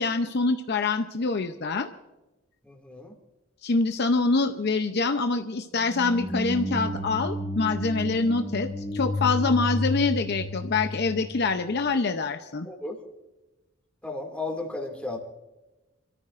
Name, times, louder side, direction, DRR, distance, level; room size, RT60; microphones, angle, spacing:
voice 1, 0.0-1.9 3.6-12.7, left 3 dB, 55° left, 7 dB, 0.7 m, -25 dB
voice 2, 2.6-3.1 12.6-13.0 14.0-15.2, left 2 dB, 5° left, 1 dB, 2.3 m, -34 dB
sound 1, 5.8-11.8, left 1 dB, 10° right, 2.1 m, -31 dB
28.0 x 13.5 x 2.5 m, 1.1 s
head